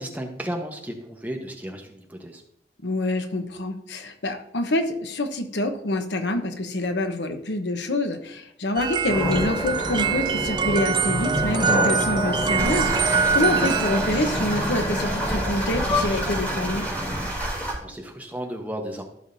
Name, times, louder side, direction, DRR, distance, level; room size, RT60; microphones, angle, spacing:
voice 1, 0.0-2.4 17.5-19.0, equal, 10° right, 2 dB, 1.1 m, -34 dB
voice 2, 2.8-16.9, left 1 dB, 90° left, 7 dB, 1.0 m, -26 dB
sound 1, 8.8-15.1, right 6 dB, 25° right, 0.3 m, -25 dB
sound 2, 9.1-17.3, left 1 dB, 30° left, 2.5 m, -28 dB
sound 3, 12.6-17.7, right 1 dB, 10° left, 3.0 m, -29 dB
14.5 x 6.3 x 2.7 m, 0.76 s
head